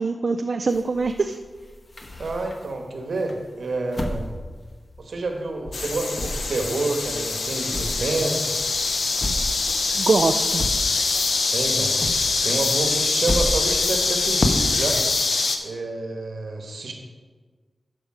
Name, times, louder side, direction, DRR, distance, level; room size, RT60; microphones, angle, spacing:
voice 1, 0.0-1.4 9.9-10.6, right 4 dB, 65° right, 6 dB, 0.4 m, -23 dB
sound 1, 0.7-2.8 3.3-5.4 5.6-11.3 11.6-15.0, left 1 dB, 45° left, 1.1 m, -31 dB
voice 2, 2.2-4.3 5.0-8.6 11.5-15.0 15.6-16.9, right 2 dB, 85° right, 3 dB, 1.3 m, -28 dB
sound 2, 5.7-15.6, left 3 dB, 85° left, 0.7 m, -24 dB
12.0 x 5.0 x 4.9 m, 1.4 s
cardioid pair, 55°, 0 cm